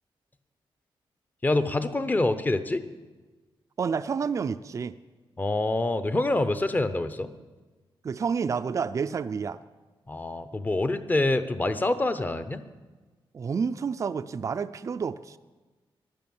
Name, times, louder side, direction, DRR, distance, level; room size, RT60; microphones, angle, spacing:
voice 1, 1.4-2.8 5.4-7.3 10.1-12.6, left 2 dB, 20° left, 12 dB, 0.7 m, -26 dB
voice 2, 3.8-5.0 8.0-9.6 13.3-15.4, right 6 dB, 35° right, 11 dB, 0.4 m, -29 dB
15.5 x 11.5 x 7.1 m, 1.3 s
wide cardioid pair, 175°, 9 cm